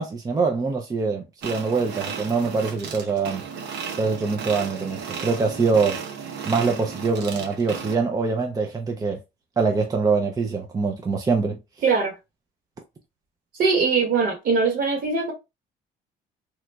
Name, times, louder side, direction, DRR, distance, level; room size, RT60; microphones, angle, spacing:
voice 1, 0.0-3.4 3.9-6.0 6.4-9.2 9.6-11.6, right 4 dB, 20° right, 0.5 m, -24 dB
sound 1, 1.4-8.0, right 6 dB, 85° right, 0.8 m, -34 dB
voice 2, 11.8-12.1 13.6-15.3, right 4 dB, 55° right, 1.5 m, -21 dB
3.0 x 2.3 x 3.3 m
cardioid pair, 110°, 17 cm